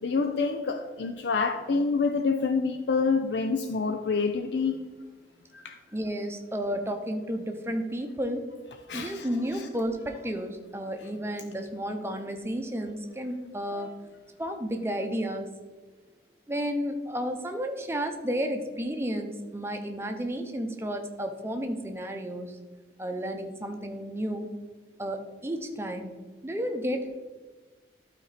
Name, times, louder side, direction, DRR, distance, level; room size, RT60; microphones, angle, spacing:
voice 1, 0.0-4.8 5.5-5.8 8.9-9.3 9.5-9.7, left 4 dB, 70° left, 7 dB, 0.5 m, -27 dB
voice 2, 5.9-8.5 8.9-14.0 14.4-15.5 16.5-22.6 23.0-24.5 25.0-26.2 26.4-27.3, equal, 15° right, 4 dB, 0.7 m, -32 dB
12.0 x 4.4 x 4.1 m, 1.3 s
head